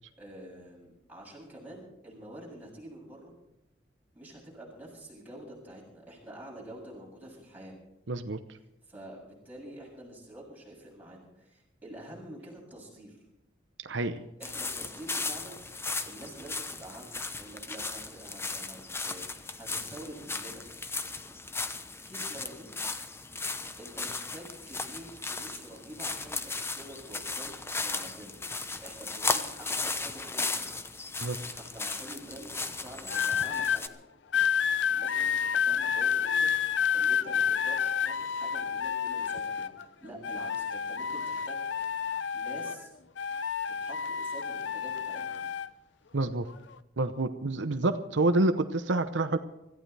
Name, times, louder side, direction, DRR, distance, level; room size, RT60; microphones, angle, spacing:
voice 1, 0.2-3.3 4.1-7.8 8.9-13.2 14.4-20.7 22.1-22.8 23.8-27.5 27.8-28.4 28.8-30.7 31.5-33.9 34.9-41.9 42.3-42.9 43.8-45.5, right 1 dB, 10° right, -4 dB, 7.3 m, -47 dB
voice 2, 8.1-8.4 13.8-14.2 31.2-31.4 46.1-46.5 47.0-49.4, right 2 dB, 85° right, 9 dB, 0.8 m, -28 dB
sound 1, 14.4-33.9, left 3 dB, 15° left, 0.8 m, -36 dB
sound 2, 33.1-33.8 34.3-39.8 40.2-42.9 43.2-45.7 46.5-46.7, left 7 dB, 75° left, 0.6 m, -29 dB
25.5 x 14.5 x 3.4 m, 0.90 s
head